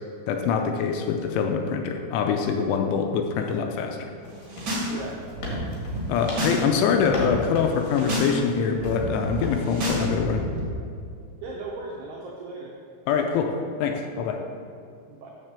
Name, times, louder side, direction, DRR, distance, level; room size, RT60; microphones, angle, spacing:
voice 1, 0.3-4.1 6.1-10.4 13.1-14.4, left 6 dB, 80° left, 3 dB, 3.0 m, -24 dB
sound 1, 4.2-9.1 9.4-9.7, left 2 dB, 55° left, 2.6 m, -38 dB
sound 2, 4.3-4.9 5.2-6.6 6.9-7.3 7.7-8.3 8.6-10.7, equal, 45° right, 1.5 m, -30 dB
voice 2, 4.9-5.2 11.4-12.7 15.1-15.3, right 3 dB, 85° right, -2 dB, 2.3 m, -37 dB
7.6 x 6.6 x 6.7 m, 2.3 s
omnidirectional pair, 5.9 m